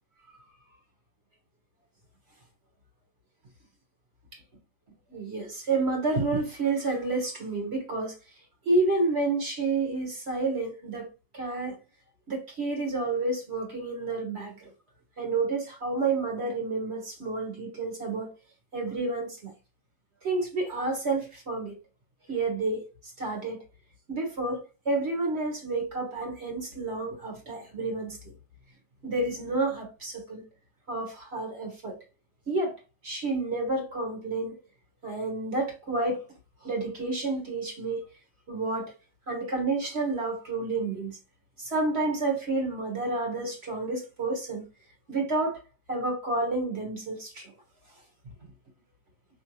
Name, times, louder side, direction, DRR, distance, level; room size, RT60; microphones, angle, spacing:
voice 1, 5.1-8.2 8.6-11.1 11.3-11.8 12.3-14.7 15.2-18.3 18.7-19.5 20.2-21.8 22.3-22.9 23.2-23.6 24.1-28.2 29.0-30.4 30.9-32.0 32.5-32.8 33.0-34.6 35.0-36.3 36.6-38.0 38.5-38.9 39.3-41.2 41.6-44.6 45.1-45.6 45.9-47.5, right 3 dB, 40° right, 1.5 m, -30 dB
4.4 x 3.2 x 3.0 m
omnidirectional pair, 1.8 m